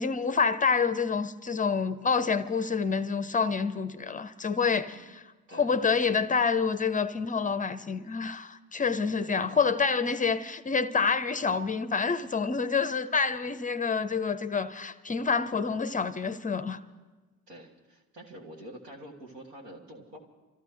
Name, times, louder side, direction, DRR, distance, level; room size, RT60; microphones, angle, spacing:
voice 1, 0.0-5.0 5.5-16.8, left 5 dB, 15° left, 0.5 m, -27 dB
voice 2, 5.5-5.8 9.2-9.6 17.5-20.2, right 1 dB, 85° right, 1.8 m, -47 dB
27.0 x 14.0 x 3.3 m
figure-of-eight pair, 55°, 48 cm